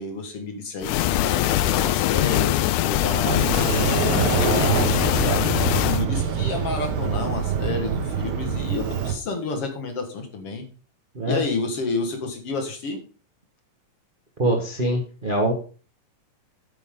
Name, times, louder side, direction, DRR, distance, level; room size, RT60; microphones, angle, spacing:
voice 1, 0.0-10.7 11.3-13.0, left 3 dB, 50° left, 4 dB, 2.3 m, -30 dB
sound 1, 0.8-6.0, left 14 dB, 80° left, 1.9 m, -22 dB
Sliding door, 3.2-9.1, right 7 dB, 85° right, 3.2 m, -25 dB
voice 2, 14.4-15.5, right 1 dB, 50° right, 1 dB, 0.6 m, -23 dB
9.2 x 9.0 x 3.8 m, 0.37 s
omnidirectional pair, 3.8 m